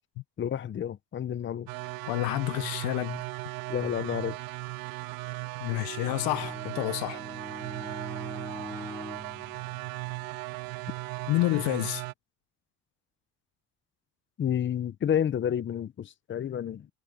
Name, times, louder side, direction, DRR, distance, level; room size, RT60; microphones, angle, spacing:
voice 1, 0.4-1.7 3.7-4.4 14.4-16.9, left 9 dB, 35° left, 0.9 m, -30 dB
sound 1, 1.7-12.1, right 21 dB, 75° right, 1.6 m, -37 dB
voice 2, 2.1-3.2 5.6-7.2 11.3-12.0, left 21 dB, 80° left, 0.7 m, -29 dB
Bowed string instrument, 5.8-10.4, left 2 dB, 5° left, 0.6 m, -44 dB
cardioid pair, 110°, 35 cm